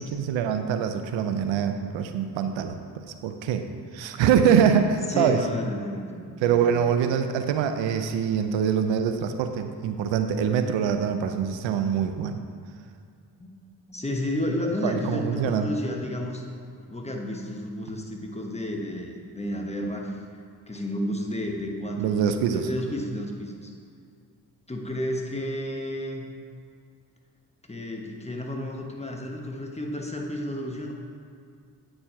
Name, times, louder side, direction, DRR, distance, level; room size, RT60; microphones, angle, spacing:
voice 1, 0.0-2.8 3.2-3.6 3.9-5.4 6.4-12.4 14.8-15.7 22.0-22.6, right 8 dB, 85° right, 8 dB, 0.5 m, -24 dB
voice 2, 5.1-6.9 13.4-13.5 13.9-16.4 16.9-20.2 20.7-23.7 24.7-26.3 27.7-30.9, left 1 dB, 15° left, 1 dB, 1.2 m, -31 dB
8.7 x 4.4 x 4.5 m, 2.3 s
supercardioid pair, 50°, 44 cm